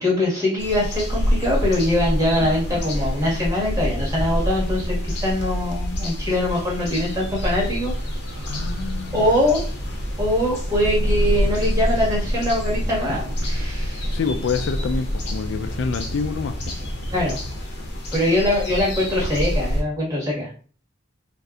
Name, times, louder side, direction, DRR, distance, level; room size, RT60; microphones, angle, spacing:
voice 1, 0.0-7.9 8.3-8.6 9.1-9.6 10.2-14.1 17.1-17.4 18.1-20.5, left 1 dB, 20° right, -5 dB, 1.4 m, -23 dB
sound 1, 0.6-19.8, equal, 60° left, 0.8 m, -27 dB
sound 2, 7.2-17.6, equal, 70° right, 0.6 m, -35 dB
voice 2, 8.4-9.3 14.1-16.7, left 5 dB, 80° left, 9 dB, 0.4 m, -27 dB
4.0 x 2.6 x 2.3 m, 0.40 s
head